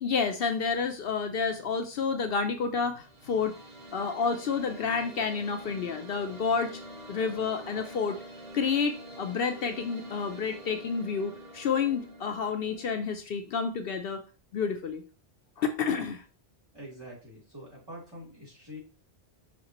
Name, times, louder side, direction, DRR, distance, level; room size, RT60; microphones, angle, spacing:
voice 1, 0.0-3.5 3.9-6.7 7.1-8.2 8.5-14.2 14.5-15.0 15.6-16.2, left 5 dB, 65° left, 7 dB, 0.8 m, -29 dB
sound 1, 2.8-13.0, right 1 dB, 65° right, 1.4 m, -46 dB
voice 2, 16.7-18.8, equal, 20° right, -6 dB, 3.1 m, -45 dB
5.9 x 5.7 x 3.0 m, 0.36 s
omnidirectional pair, 1.1 m